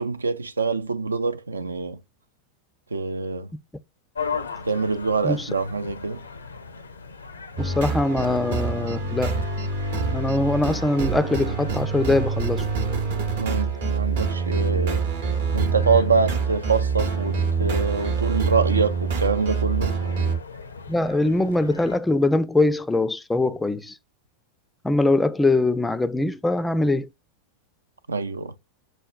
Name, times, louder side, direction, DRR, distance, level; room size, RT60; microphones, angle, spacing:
voice 1, 0.0-2.0 2.9-3.5 4.6-6.2 13.4-15.1 15.5-20.0 28.1-28.5, right 4 dB, 75° right, 0.3 m, -25 dB
sound 1, 4.1-22.0, left 5 dB, 75° left, 0.5 m, -39 dB
voice 2, 7.6-9.4 10.1-12.7 20.9-23.9 24.8-27.1, left 2 dB, 10° left, 0.3 m, -22 dB
sound 2, 7.6-20.4, right 5 dB, 55° right, 0.8 m, -26 dB
6.3 x 2.1 x 2.4 m
figure-of-eight pair, 90°, 0 cm